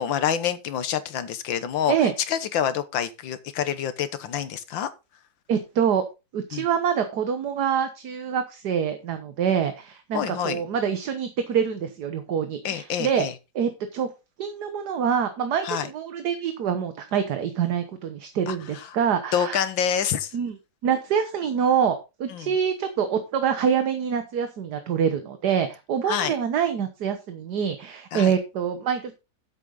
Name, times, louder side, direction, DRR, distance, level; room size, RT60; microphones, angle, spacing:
voice 1, 0.0-4.9 6.5-6.7 10.1-10.6 12.7-13.3 15.6-15.9 18.5-18.9 19.3-20.3 22.3-22.5 26.1-26.3 28.1-28.3, left 9 dB, 90° left, 1.8 m, -27 dB
voice 2, 5.5-6.0 6.3-13.3 13.5-14.1 14.4-19.6 20.3-20.6 20.8-29.1, right 7 dB, 65° right, 1.6 m, -25 dB
9.8 x 8.2 x 3.9 m
omnidirectional pair, 2.0 m